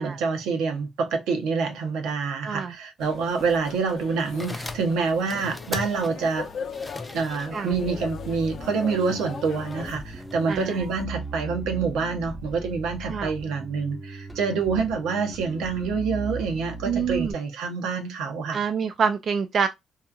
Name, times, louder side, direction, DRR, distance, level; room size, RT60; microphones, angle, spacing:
voice 1, 0.0-6.5 7.1-18.6, right 5 dB, 90° right, 0.7 m, -27 dB
voice 2, 2.4-2.7 7.5-7.8 10.5-10.9 13.0-13.3 16.8-17.3 18.5-19.7, right 6 dB, 55° right, 0.3 m, -26 dB
sound 1, 3.0-10.0, left 6 dB, 60° left, 0.5 m, -39 dB
sound 2, 4.2-11.0, left 2 dB, 10° left, 0.4 m, -40 dB
Bass guitar, 7.7-17.3, right 2 dB, 10° right, 0.8 m, -38 dB
2.8 x 2.4 x 2.3 m
cardioid pair, 90°, 0 cm